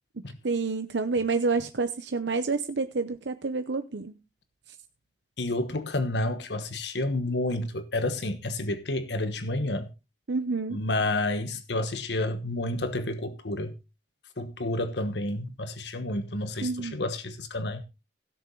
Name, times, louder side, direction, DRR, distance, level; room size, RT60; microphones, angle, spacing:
voice 1, 0.2-4.2 10.3-10.8 16.6-17.0, right 4 dB, 85° right, 0.8 m, -29 dB
voice 2, 5.4-9.9 10.7-13.8 14.4-17.8, left 2 dB, 75° left, 1.2 m, -30 dB
16.5 x 7.0 x 3.8 m
head